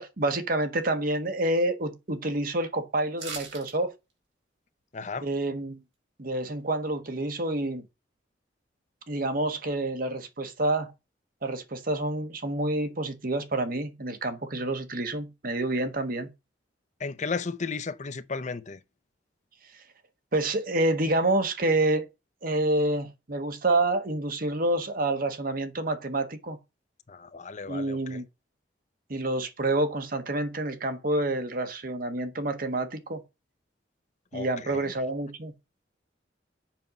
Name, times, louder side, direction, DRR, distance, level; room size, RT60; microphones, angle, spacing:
voice 1, 0.0-3.9 5.2-5.8 6.2-7.8 9.1-10.9 11.4-16.3 20.3-22.1 22.4-26.6 27.7-28.2 29.1-33.2 34.3-35.5, right 2 dB, 50° right, 1.3 m, -28 dB
sound 1, 3.2-3.8 4.1-4.2, right 5 dB, 80° right, 4.3 m, -38 dB
voice 2, 4.9-5.3 17.0-18.8 27.1-28.2 34.3-34.9, left 4 dB, 40° left, 0.6 m, -34 dB
7.5 x 5.4 x 6.0 m
head